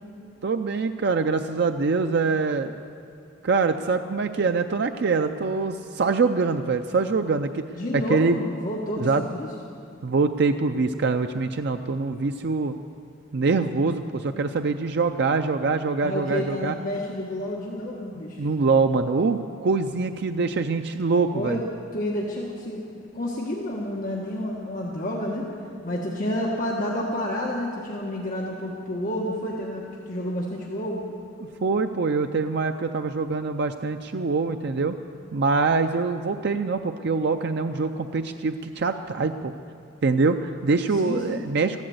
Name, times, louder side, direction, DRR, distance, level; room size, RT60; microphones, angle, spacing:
voice 1, 0.4-2.7 3.4-7.6 7.9-8.4 9.0-9.2 10.0-12.7 13.3-16.7 18.4-21.6 31.6-35.0 35.3-39.5 40.0-41.8, right 4 dB, 55° right, 7 dB, 0.5 m, -24 dB
voice 2, 7.7-9.5 16.0-18.5 21.3-21.6 21.9-25.5 25.8-31.0 40.9-41.4, left 1 dB, 45° left, -3 dB, 1.4 m, -30 dB
14.5 x 11.5 x 7.9 m, 2.5 s
head